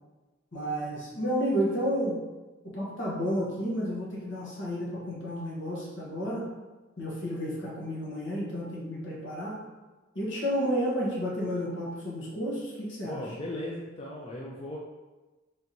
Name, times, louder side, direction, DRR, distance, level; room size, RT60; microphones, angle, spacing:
voice 1, 0.5-2.2 2.6-6.5 7.0-9.6 10.1-13.2, equal, 65° left, -5 dB, 1.2 m, -31 dB
voice 2, 13.1-14.8, left 1 dB, 30° left, -4 dB, 0.4 m, -37 dB
3.4 x 2.9 x 3.9 m, 1.2 s
head